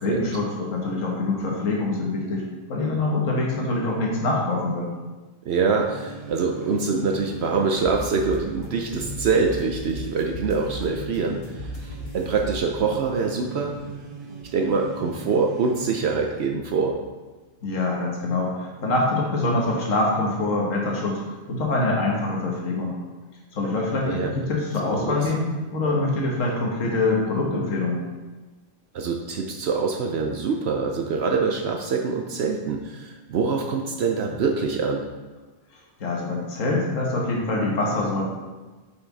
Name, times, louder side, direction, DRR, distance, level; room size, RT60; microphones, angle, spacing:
voice 1, 0.0-2.4 2.7-4.9 17.6-21.2 21.5-23.0 23.5-28.0 36.0-38.2, left 2 dB, 90° left, -2 dB, 1.5 m, -24 dB
sound 1, 5.4-16.5, right 2 dB, 40° right, 1.2 m, -40 dB
voice 2, 5.5-13.8 14.5-17.0 24.1-24.3 24.8-25.2 28.9-35.1, right 4 dB, 65° right, 3 dB, 0.8 m, -25 dB
sound 2, 7.8-13.0, equal, 65° left, 1.2 m, -37 dB
6.5 x 5.8 x 4.0 m, 1.2 s
omnidirectional pair, 1.3 m